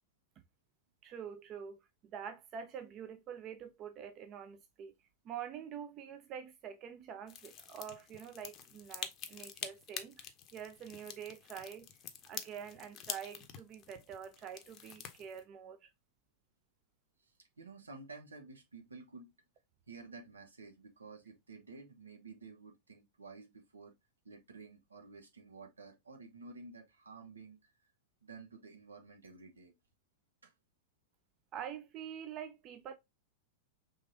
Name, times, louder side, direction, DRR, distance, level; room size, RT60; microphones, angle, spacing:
voice 1, 1.0-4.9 5.2-11.9 12.3-15.9 31.5-32.9, right 8 dB, 35° right, 0.6 m, -46 dB
sound 1, 7.3-15.4, left 8 dB, 35° left, 0.8 m, -47 dB
voice 2, 17.2-19.3 19.9-23.9 24.2-27.7 28.2-29.7 30.4-30.5, right 4 dB, 75° right, 1.2 m, -52 dB
5.3 x 3.3 x 2.7 m
figure-of-eight pair, 90°, 0 cm